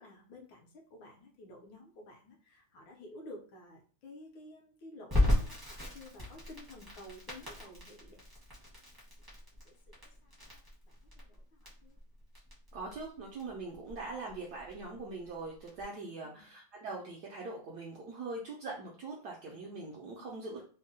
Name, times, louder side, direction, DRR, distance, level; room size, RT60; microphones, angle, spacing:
voice 1, 0.0-8.2 9.6-12.0 16.2-16.5 20.1-20.5, left 1 dB, 70° left, 1 dB, 1.3 m, -52 dB
Crackle, 5.1-15.8, left 1 dB, 20° right, 0.5 m, -36 dB
voice 2, 12.7-20.6, right 3 dB, 75° right, -1 dB, 0.9 m, -42 dB
3.6 x 2.1 x 2.6 m, 0.42 s
omnidirectional pair, 2.3 m